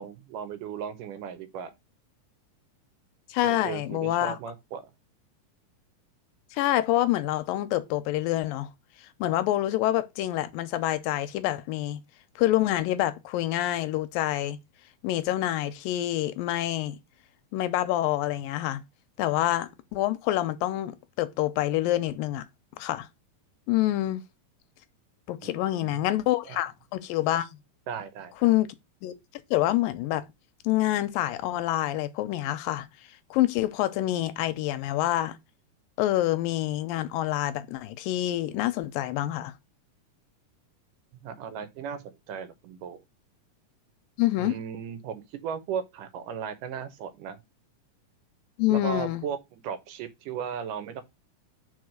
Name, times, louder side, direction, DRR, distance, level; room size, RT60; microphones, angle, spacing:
voice 1, 0.0-1.7 3.4-4.8 25.4-26.0 26.5-26.6 27.9-28.5 41.2-43.0 44.4-47.4 48.7-51.0, right 7 dB, 75° right, 2.5 m, -36 dB
voice 2, 3.3-4.4 6.5-8.7 9.2-12.0 12.4-14.6 15.0-17.0 17.5-18.8 19.2-22.5 22.8-23.1 23.7-24.2 25.3-27.5 28.4-28.7 29.0-29.1 29.5-30.2 30.6-32.9 33.3-35.4 36.0-39.5 44.2-44.6 48.6-49.2, left 14 dB, 90° left, 2.5 m, -27 dB
5.0 x 4.8 x 6.2 m
omnidirectional pair, 3.9 m